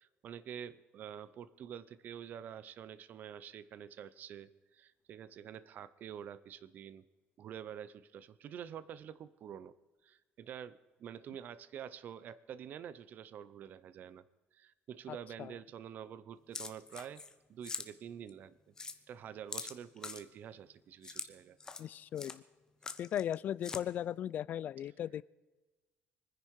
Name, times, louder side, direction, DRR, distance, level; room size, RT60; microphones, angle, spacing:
voice 1, 0.0-7.1 7.4-9.7 10.0-14.2 14.5-17.2 17.5-18.6 19.1-21.6, right 9 dB, 45° right, 16 dB, 0.6 m, -47 dB
voice 2, 15.1-15.5 21.8-22.4 23.0-25.2, left 10 dB, 40° left, 21 dB, 0.4 m, -37 dB
sound 1, 16.5-17.3 17.6-17.9 18.3-18.4 18.8-19.0 19.5-20.2 21.0-21.3 21.6-21.9 22.2-22.4 22.8-23.3 23.6-23.8, left 4 dB, 15° left, 0.8 m, -42 dB
25.0 x 10.0 x 4.7 m, 1.2 s
cardioid pair, 165°, 4 cm